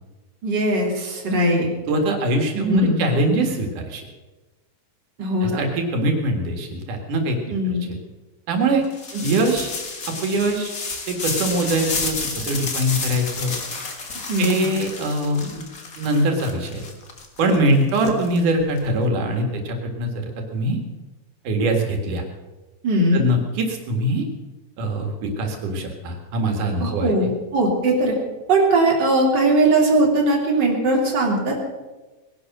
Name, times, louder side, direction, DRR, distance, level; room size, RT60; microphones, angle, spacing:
voice 1, 0.4-1.7 2.5-3.0 5.2-5.6 7.5-7.9 9.3-9.4 14.3-14.7 22.8-23.3 26.8-28.1 28.5-31.7, right 1 dB, 35° right, -1 dB, 3.5 m, -20 dB
voice 2, 1.9-4.1 5.4-7.4 7.9-8.0 8.5-8.8 9.2-9.7 10.2-10.7 11.1-13.5 14.4-15.7 16.0-16.9 17.4-20.3 20.5-20.8 21.5-22.2 23.1-24.3 24.8-27.1, right 1 dB, 90° right, 3 dB, 3.5 m, -22 dB
sound 1, 8.9-18.8, left 4 dB, 35° left, 1.6 m, -31 dB
20.0 x 11.5 x 6.1 m, 1.2 s
omnidirectional pair, 3.5 m